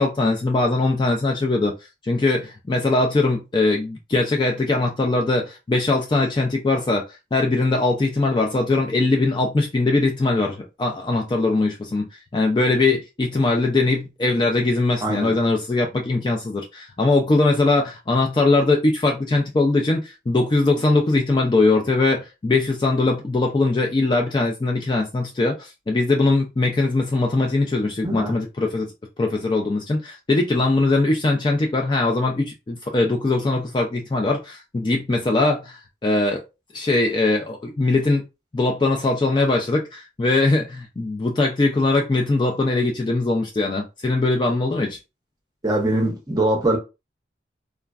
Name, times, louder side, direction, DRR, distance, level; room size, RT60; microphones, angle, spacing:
voice 1, 0.0-1.7 2.0-7.0 7.3-12.0 12.3-28.9 29.2-36.4 36.7-38.2 38.5-45.0, left 2 dB, 25° left, 0.3 m, -21 dB
voice 2, 15.0-15.3 28.0-28.3 45.6-46.8, right 1 dB, 20° right, 0.7 m, -22 dB
3.3 x 2.0 x 2.3 m
head